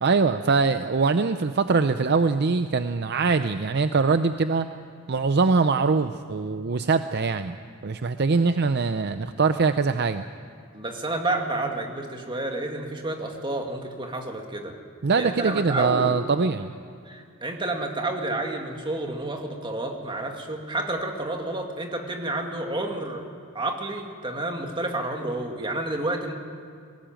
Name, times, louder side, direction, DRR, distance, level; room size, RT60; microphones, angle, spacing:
voice 1, 0.0-4.7 5.1-7.6 7.8-10.2 15.0-16.7, right 4 dB, 50° right, 10 dB, 0.6 m, -23 dB
voice 2, 10.7-14.7 15.2-16.1 17.1-23.2 23.5-26.3, right 2 dB, 25° right, 3 dB, 2.2 m, -30 dB
21.0 x 18.0 x 9.0 m, 2.3 s
head